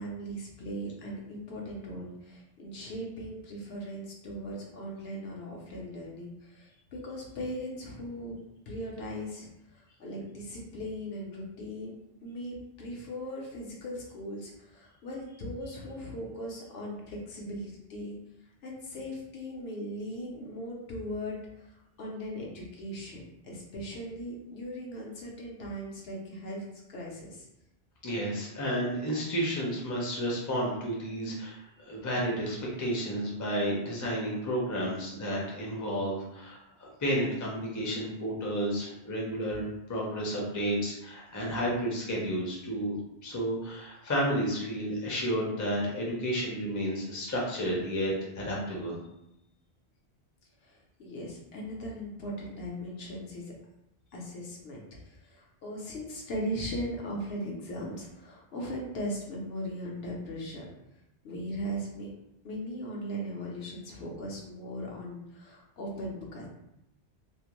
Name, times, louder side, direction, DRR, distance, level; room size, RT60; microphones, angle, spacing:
voice 1, 0.0-8.4 8.7-11.9 12.2-18.2 18.6-27.5 41.5-41.6 48.4-48.5 50.6-53.5 54.1-60.6 61.2-62.1 62.4-66.5, equal, 70° left, -2 dB, 0.9 m, -39 dB
voice 2, 28.0-43.0 43.2-49.0, equal, 25° left, -3 dB, 0.5 m, -31 dB
2.5 x 2.1 x 2.9 m, 0.84 s
omnidirectional pair, 1.1 m